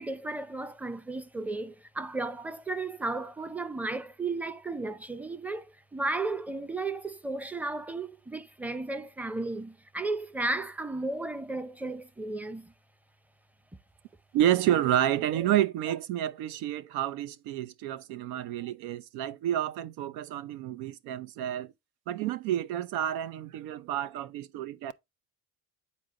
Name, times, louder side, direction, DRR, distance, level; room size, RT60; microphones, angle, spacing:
voice 1, 0.0-12.7, right 2 dB, 5° right, 0.6 m, -34 dB
voice 2, 14.3-21.7 22.1-24.9, right 11 dB, 85° right, 0.7 m, -29 dB
9.2 x 4.2 x 3.7 m
cardioid pair, 115°, 36 cm